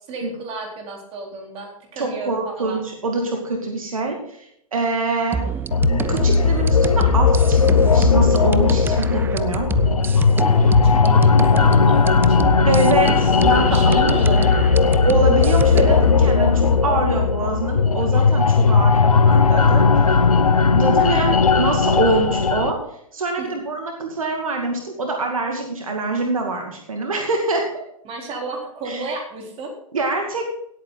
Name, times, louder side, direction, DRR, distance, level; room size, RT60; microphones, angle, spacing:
voice 1, 0.1-2.8 10.8-12.7 13.4-15.0 21.0-21.4 23.4-23.5 28.0-29.7, right 2 dB, 35° right, 1 dB, 4.0 m, -33 dB
voice 2, 2.0-5.4 5.9-9.7 12.7-14.2 15.0-20.2 20.7-22.8 23.1-27.7 28.8-29.0 29.9-30.4, right 3 dB, 75° right, 2 dB, 2.2 m, -24 dB
sound 1, 5.3-16.1, right 6 dB, 10° right, 0.4 m, -28 dB
sound 2, 5.7-22.7, left 5 dB, 80° left, 0.9 m, -16 dB
17.5 x 8.6 x 3.9 m, 0.74 s
figure-of-eight pair, 105°, 18 cm